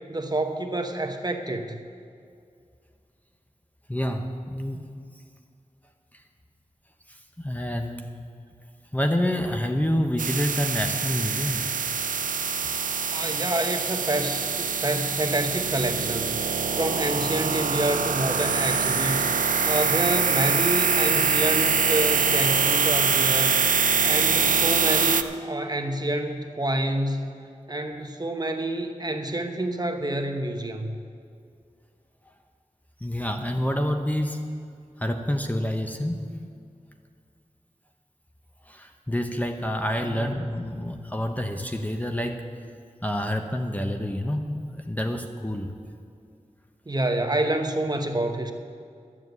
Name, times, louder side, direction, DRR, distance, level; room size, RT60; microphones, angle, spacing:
voice 1, 0.1-1.8 12.8-19.3 19.6-23.6 24.0-27.3 27.7-31.0 40.0-40.3 46.9-48.5, right 1 dB, 30° right, 5 dB, 1.0 m, -28 dB
voice 2, 3.9-4.9 7.1-8.1 8.9-11.7 33.0-34.4 35.0-36.2 38.7-42.4 43.0-45.7, equal, 10° left, 4 dB, 0.9 m, -28 dB
sound 1, 10.2-25.2, right 6 dB, 85° right, 0.5 m, -24 dB
12.5 x 7.5 x 8.0 m, 2.4 s
wide cardioid pair, 65°, 13 cm